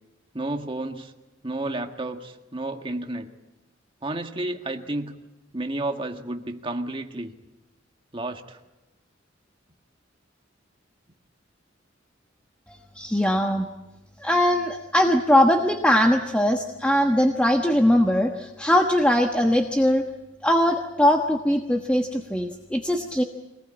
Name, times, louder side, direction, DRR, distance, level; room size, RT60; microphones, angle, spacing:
voice 1, 0.3-1.1 1.4-3.3 4.0-5.2 5.5-7.3 8.1-8.6, right 2 dB, 25° right, 4 dB, 1.8 m, -31 dB
voice 2, 12.7-13.7 14.2-20.0 20.4-23.2, equal, 5° left, 2 dB, 1.2 m, -21 dB
25.0 x 19.5 x 8.8 m, 1.0 s
head